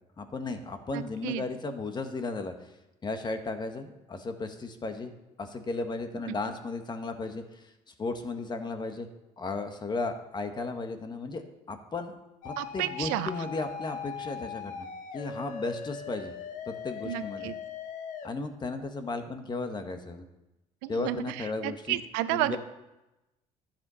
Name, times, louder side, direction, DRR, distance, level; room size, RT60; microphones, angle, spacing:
voice 1, 0.2-2.5 3.0-5.1 5.4-7.7 8.0-9.1 9.4-12.2 12.4-14.9 15.1-16.3 16.7-17.5 18.2-20.2 20.9-22.0 22.3-22.6, left 3 dB, 30° left, 7 dB, 1.5 m, -35 dB
voice 2, 0.9-1.4 6.3-6.4 12.6-13.3 17.0-17.5 20.8-22.6, right 15 dB, 90° right, 13 dB, 0.7 m, -32 dB
sound 1, 12.4-18.3, left 7 dB, 65° left, 1.3 m, -40 dB
12.0 x 7.4 x 5.7 m, 0.98 s
supercardioid pair, 90°, 14 cm